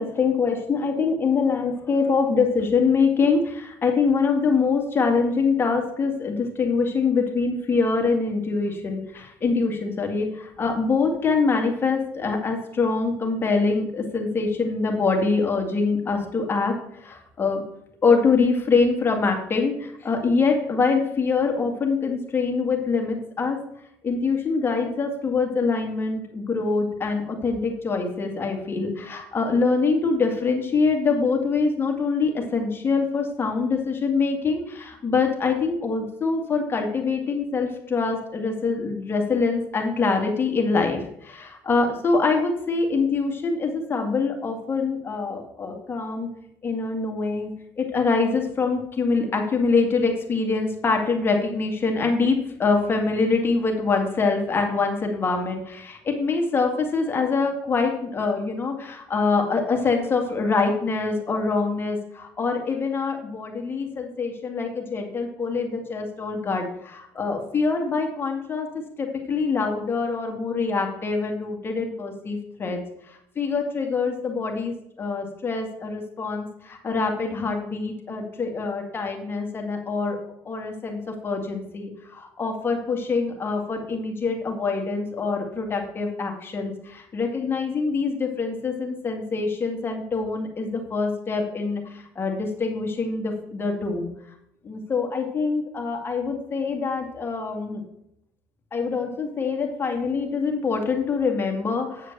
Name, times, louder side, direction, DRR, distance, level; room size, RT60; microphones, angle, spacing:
voice 1, 0.0-16.7 17.0-17.6 18.0-23.6 24.0-46.3 46.6-47.5 47.8-68.7 69.0-72.8 73.4-80.2 80.5-94.1 94.6-97.8 98.7-102.1, left 4 dB, 30° left, 2 dB, 2.0 m, -24 dB
8.8 x 5.0 x 6.6 m, 0.76 s
cardioid pair, 110°, 8 cm